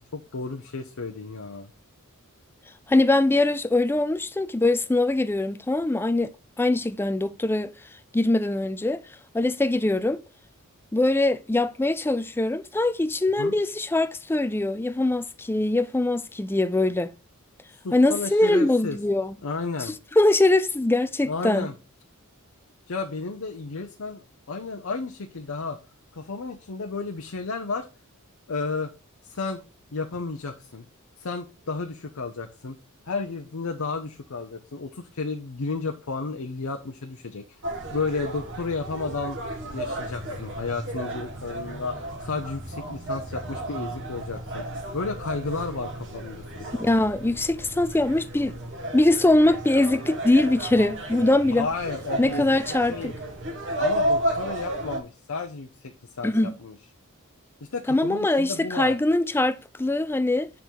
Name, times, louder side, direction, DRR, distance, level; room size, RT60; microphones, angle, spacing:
voice 1, 0.1-1.7 13.4-13.6 17.8-19.0 19.4-20.0 21.2-21.7 22.9-25.8 26.1-27.9 28.5-28.9 29.2-29.6 29.9-30.8 31.2-32.8 33.1-37.6 37.9-39.4 39.7-44.6 44.9-46.7 51.5-53.2 53.8-56.8 57.6-59.0, left 4 dB, 65° left, 0.7 m, -32 dB
voice 2, 2.9-6.3 6.6-7.7 8.1-9.0 9.3-10.2 10.9-17.1 17.9-19.3 19.8-21.7 46.8-48.6 48.9-51.7 52.2-53.1 56.2-56.5 57.9-60.5, left 2 dB, 10° left, 0.3 m, -22 dB
sound 1, 37.6-55.0, right 1 dB, 55° right, 1.5 m, -33 dB
7.0 x 3.9 x 4.6 m
head